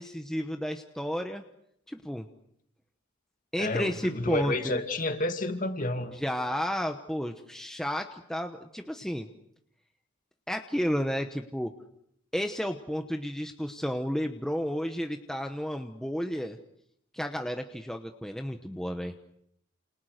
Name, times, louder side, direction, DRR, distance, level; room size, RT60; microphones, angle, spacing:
voice 1, 0.0-1.4 1.9-2.3 3.5-4.8 6.1-9.3 10.5-11.7 12.3-16.6 17.1-19.1, equal, ahead, 5 dB, 1.0 m, -32 dB
voice 2, 3.6-6.2, left 2 dB, 40° left, 7 dB, 2.4 m, -30 dB
30.0 x 28.0 x 6.6 m, 0.75 s
head